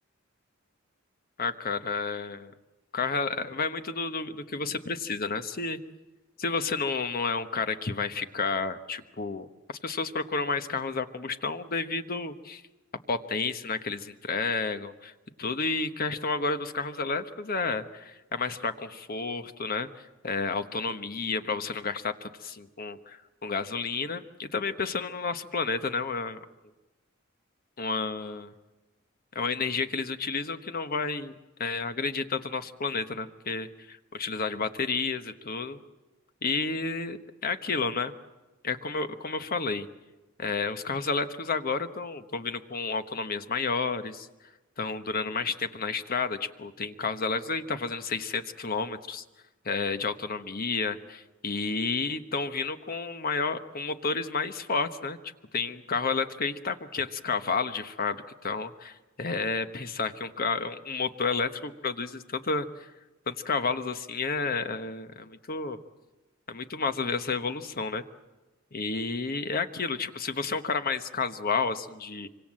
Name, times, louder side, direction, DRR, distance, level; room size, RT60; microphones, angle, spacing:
voice 1, 1.4-2.5 2.9-5.8 6.4-12.6 13.1-15.1 15.4-19.9 20.2-26.4 27.8-28.5 29.3-31.3 31.6-35.8 36.4-38.1 38.6-39.9 40.4-44.3 44.8-49.2 49.6-55.2 55.5-62.9 63.3-65.8 66.5-68.0 68.7-72.3, left 4 dB, 45° left, 9 dB, 1.2 m, -31 dB
25.0 x 25.0 x 7.6 m, 1.1 s
head